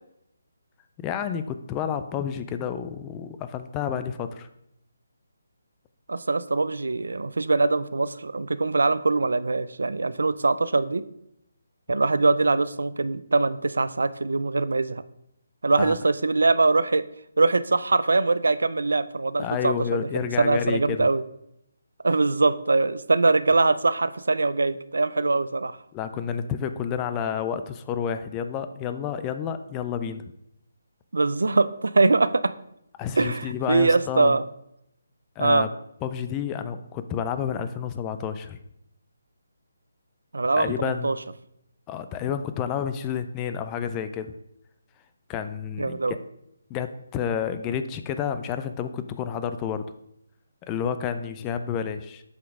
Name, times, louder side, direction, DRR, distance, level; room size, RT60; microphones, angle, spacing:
voice 1, 1.0-4.5 15.8-16.0 19.4-21.1 25.9-30.2 33.0-34.4 35.4-35.7 36.0-38.6 40.6-41.1 41.9-44.3 45.3-46.2 46.7-49.9 50.7-52.2, left 8 dB, 15° left, 10 dB, 0.3 m, -30 dB
voice 2, 6.1-11.0 11.9-15.0 15.6-17.1 17.4-19.7 20.1-21.2 22.0-25.8 31.1-32.5 33.2-34.4 35.4-35.7 40.3-41.2 45.8-46.1, right 3 dB, 90° right, 14 dB, 0.4 m, -22 dB
8.0 x 5.1 x 3.6 m, 0.79 s
hypercardioid pair, 165°, 0 cm